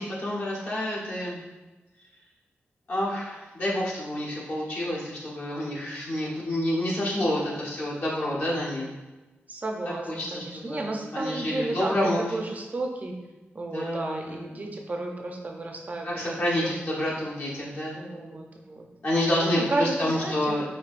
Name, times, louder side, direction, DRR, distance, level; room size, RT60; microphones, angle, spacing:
voice 1, 0.0-1.4 2.9-8.8 10.1-10.8 11.1-12.2 13.7-14.3 16.0-18.0 19.0-20.6, left 1 dB, 55° left, -6 dB, 1.1 m, -28 dB
voice 2, 7.1-7.6 9.5-13.1 13.5-16.7 17.9-18.9 19.4-20.5, right 2 dB, 35° right, 1 dB, 0.5 m, -33 dB
4.5 x 2.7 x 2.5 m, 1.1 s
wide cardioid pair, 115°, 4 cm